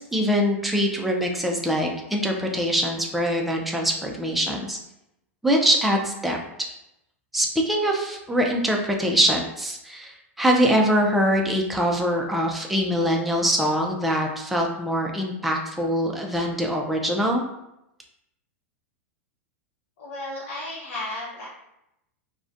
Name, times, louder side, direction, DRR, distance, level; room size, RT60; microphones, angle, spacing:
voice 1, 0.0-4.8 5.4-6.4 7.3-17.4, equal, ahead, 0 dB, 0.3 m, -23 dB
voice 2, 20.0-21.5, left 2 dB, 65° left, -6 dB, 0.7 m, -33 dB
2.3 x 2.1 x 2.5 m, 0.85 s
hypercardioid pair, 115°, 7 cm